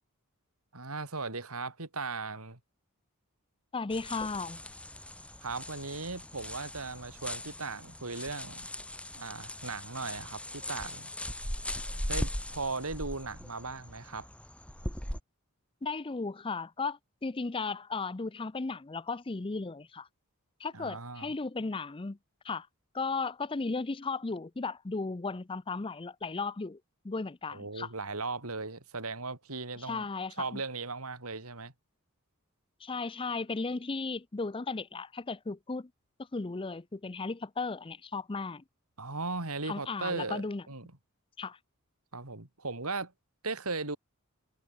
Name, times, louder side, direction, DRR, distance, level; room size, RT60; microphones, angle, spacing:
voice 1, 0.7-2.6 5.4-8.7 9.1-11.1 12.1-14.3 20.7-21.3 27.5-30.1 30.4-31.7 39.0-40.4 40.7-40.9 42.1-43.1 43.4-44.0, right 3 dB, 75° right, 3.6 m, -37 dB
voice 2, 3.7-4.6 15.8-20.1 20.6-22.2 22.4-22.7 22.9-26.8 27.0-27.9 29.8-30.6 32.8-35.9 36.3-38.6 39.6-40.6 41.4-41.6, left 4 dB, 25° left, 0.5 m, -35 dB
sound 1, 3.9-15.2, left 1 dB, 5° left, 3.9 m, -40 dB
head